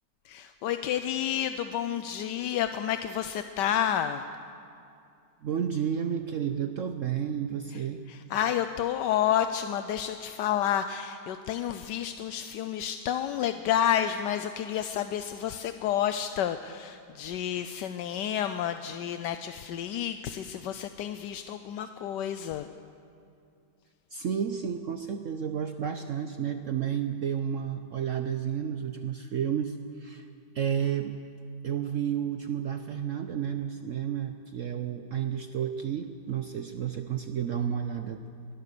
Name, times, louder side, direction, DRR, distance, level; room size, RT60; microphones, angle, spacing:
voice 1, 0.2-4.2 8.1-22.7, left 10 dB, 80° left, 9 dB, 1.3 m, -30 dB
voice 2, 5.4-8.0 24.1-30.3 30.5-31.2 31.6-38.2, right 8 dB, 60° right, 8 dB, 0.9 m, -31 dB
23.5 x 16.5 x 6.8 m, 2.5 s
omnidirectional pair, 1.9 m